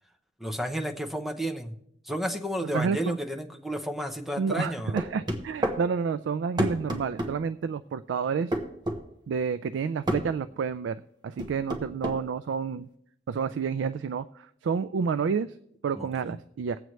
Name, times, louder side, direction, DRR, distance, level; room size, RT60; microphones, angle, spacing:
voice 1, 0.4-1.7 2.0-5.0 15.9-16.4, equal, ahead, 4 dB, 0.7 m, -32 dB
voice 2, 2.7-3.2 4.4-8.6 9.3-12.9 13.3-15.5 15.8-16.8, right 6 dB, 85° right, 11 dB, 0.3 m, -29 dB
sound 1, 5.0-5.8 6.6-7.3 8.5-9.0 10.1-10.3 11.4-12.2, right 1 dB, 25° right, 1.0 m, -28 dB
19.5 x 7.9 x 3.1 m, 0.75 s
head